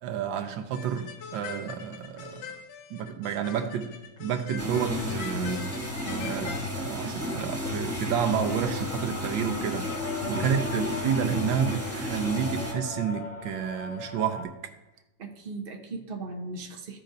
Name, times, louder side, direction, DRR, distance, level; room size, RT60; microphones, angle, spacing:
voice 1, 0.0-2.5 2.9-5.7 6.2-9.9 10.3-14.7, right 8 dB, 75° right, 6 dB, 1.4 m, -30 dB
sound 1, 0.7-6.7, left 6 dB, 80° left, 1.5 m, -43 dB
sound 2, 4.6-12.7, left 1 dB, 10° right, 1.3 m, -32 dB
voice 2, 6.0-6.4 10.2-10.5 15.2-17.0, right 3 dB, 40° right, 2 dB, 0.8 m, -38 dB
sound 3, 8.3-14.4, left 4 dB, 60° left, 0.9 m, -40 dB
14.5 x 5.1 x 2.6 m, 1.0 s
omnidirectional pair, 2.1 m